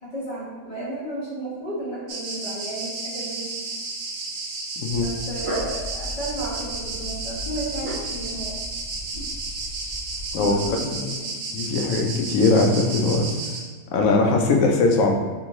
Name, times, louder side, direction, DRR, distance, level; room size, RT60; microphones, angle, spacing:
voice 1, 0.0-3.6 4.9-8.6 10.3-11.3, right 1 dB, 25° left, -8 dB, 1.2 m, -33 dB
sound 1, 2.1-13.6, right 3 dB, 60° right, 0.8 m, -33 dB
voice 2, 4.8-5.1 10.3-10.5 10.8-11.0 11.5-13.3 13.9-15.1, left 3 dB, 75° left, 2 dB, 1.0 m, -20 dB
Dog, 4.9-10.8, equal, 45° right, 1.4 m, -35 dB
3.6 x 3.5 x 3.0 m, 1.4 s
omnidirectional pair, 1.5 m